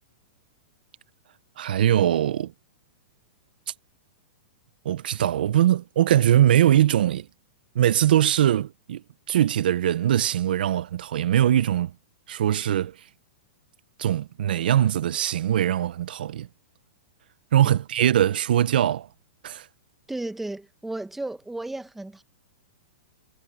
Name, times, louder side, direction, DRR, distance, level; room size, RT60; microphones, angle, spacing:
voice 1, 1.6-2.5 4.8-7.3 7.7-11.9 12.3-13.0 14.0-16.5 17.5-19.1 19.4-19.7, right 11 dB, 70° right, 0.8 m, -21 dB
voice 2, 20.1-22.2, right 2 dB, 5° right, 1.1 m, -34 dB
hypercardioid pair, 150°, 5 cm